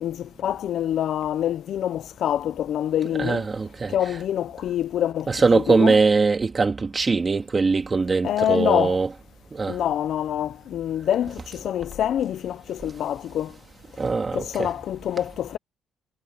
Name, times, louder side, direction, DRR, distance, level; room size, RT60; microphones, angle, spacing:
voice 1, 0.0-3.5 3.9-5.9 8.2-9.0 9.7-13.5 14.3-15.6, left 10 dB, 70° left, 0.8 m, -26 dB
voice 2, 3.2-4.2 5.3-9.1 9.5-9.8 14.0-14.7, right 4 dB, 30° right, 2.5 m, -21 dB
cardioid pair, 90°, 0 cm